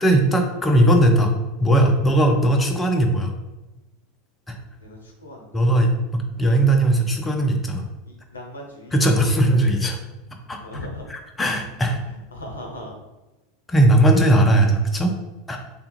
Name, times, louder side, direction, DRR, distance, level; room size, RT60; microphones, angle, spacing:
voice 1, 0.0-1.3 1.6-3.3 4.5-4.6 5.5-7.9 8.9-10.0 10.5-12.0 13.7-15.1 15.5-15.6, right 1 dB, 15° left, 2 dB, 0.5 m, -18 dB
voice 2, 4.8-5.7 8.1-8.9 10.6-11.0 12.3-12.9, left 1 dB, 75° left, 1 dB, 0.6 m, -37 dB
3.5 x 2.3 x 2.9 m, 1.1 s
figure-of-eight pair, 80°, 0 cm